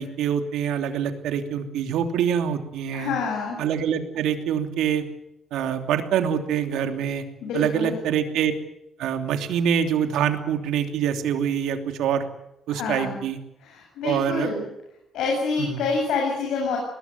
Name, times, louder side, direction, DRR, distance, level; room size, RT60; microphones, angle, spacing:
voice 1, 0.0-3.1 3.6-5.1 5.5-7.2 7.5-8.5 9.0-12.3 12.7-13.4 14.0-14.5 15.6-15.8, right 8 dB, 85° right, 6 dB, 2.9 m, -25 dB
voice 2, 2.9-3.6 7.4-7.9 12.7-13.2 13.6-14.6 15.1-16.8, left 4 dB, 85° left, 0 dB, 7.9 m, -27 dB
21.5 x 19.0 x 9.5 m, 0.83 s
cardioid pair, 90°, 0 cm